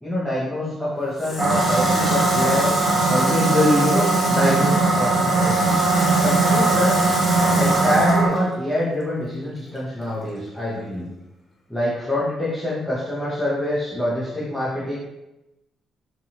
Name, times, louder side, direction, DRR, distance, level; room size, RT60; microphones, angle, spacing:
voice 1, 0.0-2.7 3.1-5.8 6.2-7.0 7.6-11.1 11.7-15.0, left 1 dB, 5° left, -7 dB, 0.7 m, -25 dB
Water tap faucet, 1.2-9.0 9.3-10.6, left 2 dB, 40° left, 0.7 m, -31 dB
sound 1, 1.4-8.3, right 3 dB, 40° right, 0.8 m, -19 dB
2.8 x 2.3 x 2.8 m, 0.94 s
cardioid pair, 90°, 0 cm